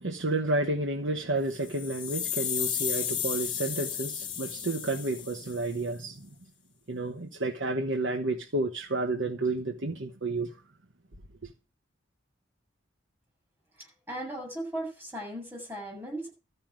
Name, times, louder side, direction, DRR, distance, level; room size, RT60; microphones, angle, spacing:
voice 1, 0.0-6.3 6.9-10.5, right 2 dB, 70° right, 1.2 m, -31 dB
sound 1, 1.5-5.7, left 9 dB, 25° left, 1.6 m, -33 dB
voice 2, 14.1-16.3, right 1 dB, 10° right, 7.8 m, -37 dB
13.5 x 5.6 x 8.9 m
head